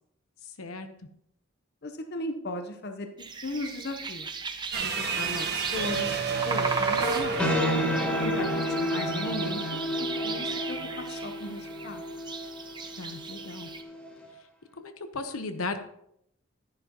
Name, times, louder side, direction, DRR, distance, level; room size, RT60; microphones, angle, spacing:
voice 1, 0.4-0.9 13.0-13.7 14.8-15.8, left 3 dB, 75° left, 8 dB, 0.9 m, -36 dB
voice 2, 1.8-3.1 3.4-4.3 4.8-7.5 8.2-12.1, left 1 dB, 45° left, 5 dB, 0.8 m, -37 dB
sound 1, 3.2-13.8, right 4 dB, 20° right, 0.6 m, -37 dB
sound 2, 4.7-9.1, right 5 dB, 50° right, 1.4 m, -30 dB
sound 3, 7.2-14.3, equal, 5° left, 2.2 m, -31 dB
12.0 x 10.5 x 3.0 m, 0.74 s
head